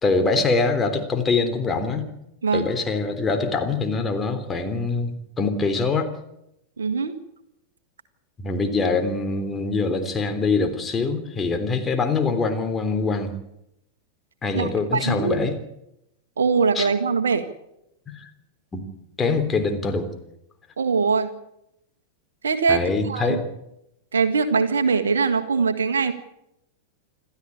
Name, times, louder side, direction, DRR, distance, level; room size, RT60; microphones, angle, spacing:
voice 1, 0.0-2.1 2.5-6.1 8.4-13.3 14.4-15.5 16.7-16.9 18.1-18.3 18.7-18.8 19.2-20.1 22.7-23.4, left 4 dB, 20° left, 6 dB, 3.5 m, -24 dB
voice 2, 6.8-7.1 14.5-15.4 16.4-17.4 20.8-21.3 22.4-23.4 24.1-26.1, right 5 dB, 70° right, 9 dB, 1.7 m, -22 dB
28.0 x 13.0 x 8.6 m, 0.84 s
figure-of-eight pair, 90°, 0 cm